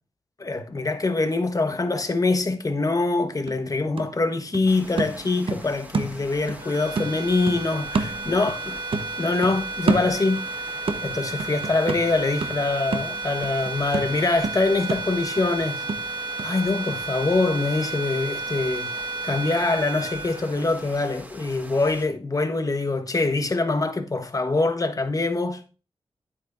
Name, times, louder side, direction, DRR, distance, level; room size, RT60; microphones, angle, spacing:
voice 1, 0.4-8.8 9.2-15.8 16.4-25.6, left 3 dB, 35° left, 1.2 m, -24 dB
sound 1, 3.0-3.1 3.5-6.6 7.0-8.7 8.9-10.5 10.9-16.5 16.9-17.0, right 4 dB, 65° right, 0.9 m, -30 dB
sound 2, 4.7-22.1, right 1 dB, 15° right, 1.6 m, -44 dB
sound 3, 6.6-21.1, right 2 dB, 50° right, 1.5 m, -33 dB
9.5 x 8.6 x 2.6 m
cardioid pair, 65°, 10 cm